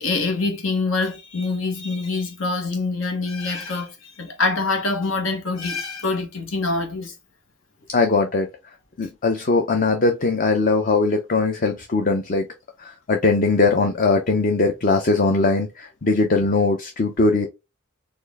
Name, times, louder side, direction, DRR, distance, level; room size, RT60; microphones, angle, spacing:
voice 1, 0.0-7.1, left 3 dB, 85° left, 1.3 m, -25 dB
voice 2, 7.9-12.5 12.8-17.5, left 3 dB, 45° left, 0.6 m, -20 dB
4.3 x 2.6 x 3.4 m
head